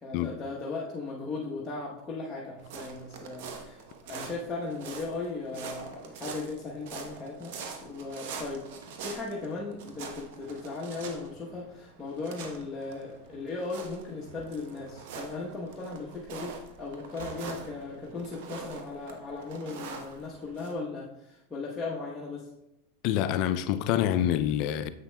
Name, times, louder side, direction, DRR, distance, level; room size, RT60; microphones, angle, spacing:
voice 1, 0.0-7.5 7.8-8.7 9.0-22.5, left 3 dB, 15° left, 1.0 m, -37 dB
sound 1, 2.6-20.7, right 5 dB, 65° right, 0.9 m, -44 dB
sound 2, 10.3-11.1 11.4-12.0 13.0-14.0 14.3-14.4 15.5-15.6 17.0-18.0, right 3 dB, 85° right, 1.2 m, -53 dB
voice 2, 23.0-24.9, left 11 dB, 55° left, 0.4 m, -26 dB
7.3 x 5.9 x 2.2 m
hypercardioid pair, 115°, 0 cm